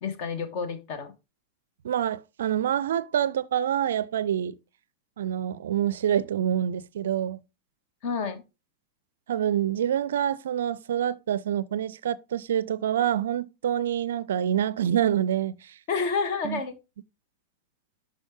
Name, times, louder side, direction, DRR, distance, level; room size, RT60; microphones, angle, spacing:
voice 1, 0.0-1.1 8.0-8.4 15.9-16.7, left 5 dB, 45° left, 1.3 m, -29 dB
voice 2, 1.8-4.6 5.2-7.4 9.3-15.8 16.4-16.6, right 10 dB, 60° right, 0.4 m, -26 dB
11.0 x 4.1 x 3.7 m
figure-of-eight pair, 90°, 0 cm